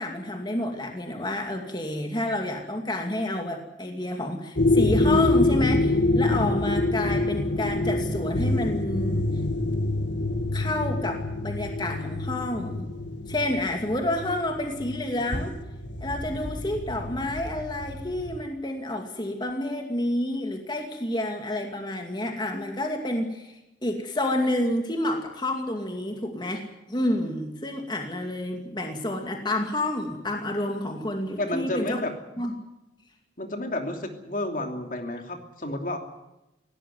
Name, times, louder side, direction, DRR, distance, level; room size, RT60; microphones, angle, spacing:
voice 1, 0.0-9.3 10.5-12.9 13.3-15.6 16.0-32.0 32.4-32.5, left 1 dB, 25° left, 3 dB, 2.4 m, -29 dB
sound 1, 4.6-18.4, left 2 dB, 80° left, 2.1 m, -26 dB
voice 2, 31.4-32.1 33.4-36.0, left 1 dB, 45° left, 4 dB, 2.9 m, -31 dB
19.5 x 17.5 x 9.5 m, 0.93 s
head